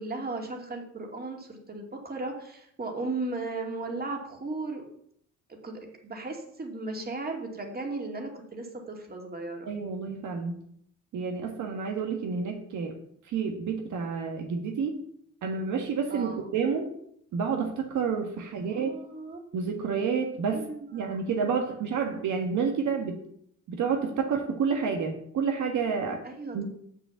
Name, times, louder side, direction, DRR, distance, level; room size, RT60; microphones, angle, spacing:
voice 1, 0.0-4.8 5.5-9.8 16.1-16.5 18.4-19.4 20.5-20.9 26.2-26.6, right 3 dB, 30° right, 2 dB, 2.5 m, -36 dB
voice 2, 9.7-10.6 11.1-12.9 13.3-15.0 15.4-16.9 17.3-19.0 19.5-20.6 20.9-23.2 23.7-26.2 26.5-26.6, right 5 dB, 75° right, 3 dB, 1.6 m, -29 dB
7.5 x 6.7 x 7.2 m, 0.69 s
cardioid pair, 90°, 30 cm